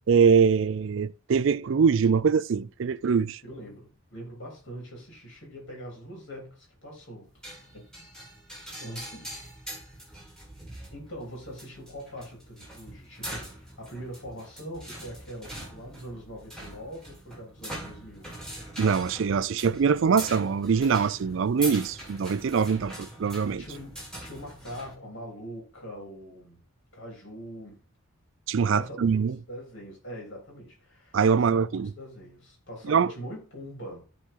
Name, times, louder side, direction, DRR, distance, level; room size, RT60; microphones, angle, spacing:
voice 1, 0.1-3.4 18.8-23.6 28.5-29.4 31.1-31.9 32.9-33.1, right 6 dB, 60° right, 0.4 m, -23 dB
voice 2, 3.5-7.3 7.7-7.8 8.8-9.3 10.9-18.3 22.7-22.8 23.5-26.6 26.9-27.8 28.6-34.0, equal, 55° left, 3.8 m, -42 dB
sound 1, 7.4-24.9, right 1 dB, 5° left, 2.8 m, -42 dB
13.0 x 4.3 x 3.8 m
head